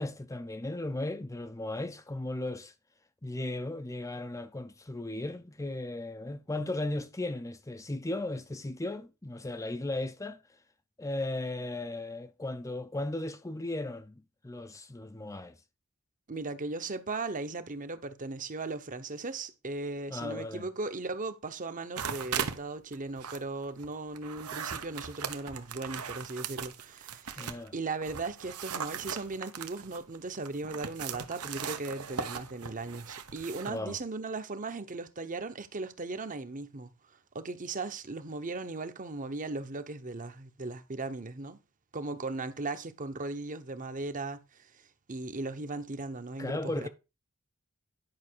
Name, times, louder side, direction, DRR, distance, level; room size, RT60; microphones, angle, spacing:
voice 1, 0.0-2.7 3.2-10.4 11.0-14.1 14.4-15.5 20.1-20.7 27.4-27.7 33.7-34.0 46.4-46.9, left 2 dB, 15° left, 0.6 m, -36 dB
voice 2, 16.3-41.6 41.9-46.9, right 3 dB, 35° right, 1.0 m, -37 dB
sound 1, 21.9-22.6 22.9-27.7 28.0-33.8, right 7 dB, 80° right, 1.1 m, -38 dB
11.0 x 5.9 x 4.6 m
head